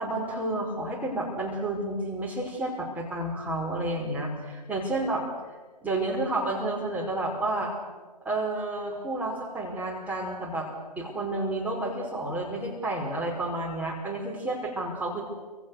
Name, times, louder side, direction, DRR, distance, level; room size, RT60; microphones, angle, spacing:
voice 1, 0.0-5.3 5.8-7.7 8.2-10.7 11.0-15.2, right 2 dB, 5° right, -2 dB, 5.2 m, -30 dB
29.0 x 26.5 x 6.7 m, 1.3 s
hypercardioid pair, 135°, 21 cm